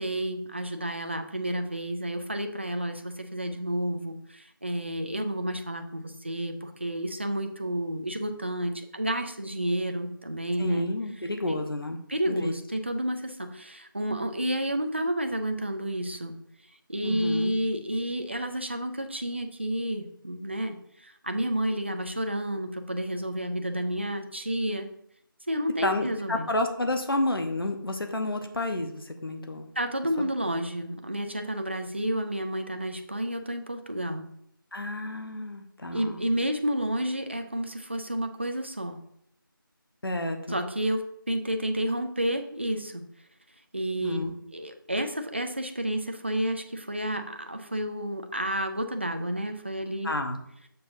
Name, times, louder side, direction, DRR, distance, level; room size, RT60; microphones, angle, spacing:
voice 1, 0.0-10.9 11.5-11.6 12.1-16.4 16.9-24.9 25.5-26.5 29.8-34.3 35.9-39.0 40.5-43.0 43.7-44.2 44.5-50.1, right 1 dB, 30° right, 7 dB, 0.5 m, -30 dB
voice 2, 10.6-12.0 12.3-12.5 17.0-17.5 25.8-29.7 34.7-36.3 40.0-40.6 44.0-44.3 50.0-50.4, left 1 dB, 90° left, 5 dB, 1.0 m, -30 dB
6.9 x 6.6 x 2.6 m, 0.71 s
figure-of-eight pair, 175°, 12 cm